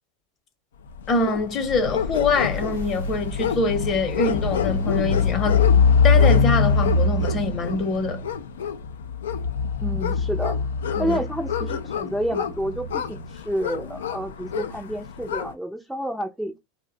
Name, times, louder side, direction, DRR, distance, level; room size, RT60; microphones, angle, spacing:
sound 1, 1.0-15.5, left 5 dB, 85° left, 0.4 m, -23 dB
voice 1, 1.1-5.6 6.0-8.2 11.0-11.2, left 3 dB, 40° left, 0.8 m, -24 dB
sound 2, 2.3-8.2, right 4 dB, 80° right, 0.7 m, -36 dB
voice 2, 9.8-10.6 11.0-16.5, equal, 5° right, 0.5 m, -29 dB
2.5 x 2.1 x 3.7 m
hypercardioid pair, 105°, 0 cm